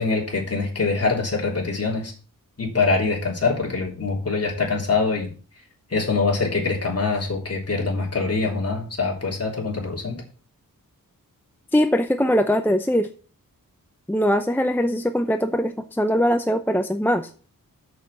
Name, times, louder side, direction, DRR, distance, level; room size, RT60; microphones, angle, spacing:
voice 1, 0.0-2.1 2.6-5.3 5.9-10.2, left 4 dB, 45° left, -1 dB, 3.5 m, -24 dB
voice 2, 11.7-13.1 14.1-17.3, equal, 5° left, 7 dB, 0.6 m, -21 dB
7.3 x 6.4 x 7.2 m, 0.39 s
wide cardioid pair, 100°, 35 cm